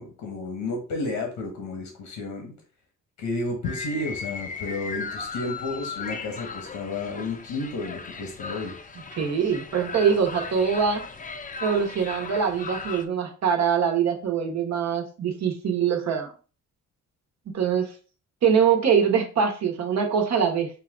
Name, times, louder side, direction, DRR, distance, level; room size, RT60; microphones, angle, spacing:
voice 1, 0.0-2.5 3.2-8.8, left 2 dB, 85° left, 2 dB, 1.3 m, -32 dB
sound 1, 3.6-13.1, left 5 dB, 25° left, 0.6 m, -37 dB
voice 2, 9.2-11.0 11.6-16.3 17.5-17.9 18.4-20.7, right 7 dB, 60° right, 3 dB, 1.2 m, -23 dB
5.5 x 2.4 x 3.8 m, 0.37 s
cardioid pair, 90°, 30 cm